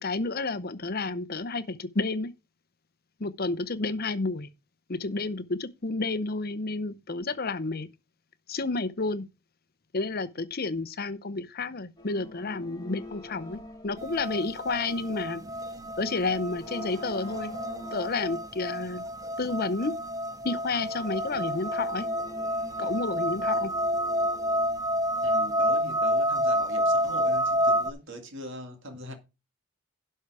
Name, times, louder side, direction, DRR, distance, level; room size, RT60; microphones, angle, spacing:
voice 1, 0.0-2.3 3.2-4.5 4.9-7.9 8.5-9.3 9.9-15.4 16.0-17.5 17.9-19.0 19.4-19.9 20.4-22.1 22.8-23.7, left 3 dB, 45° left, 0.8 m, -30 dB
sound 1, 12.0-14.9 15.5-18.6 20.8-24.8, left 1 dB, 20° left, 1.9 m, -44 dB
sound 2, 14.0-27.9, equal, 15° right, 0.5 m, -29 dB
voice 2, 25.2-29.1, equal, 55° right, 2.1 m, -41 dB
11.5 x 5.6 x 4.8 m
head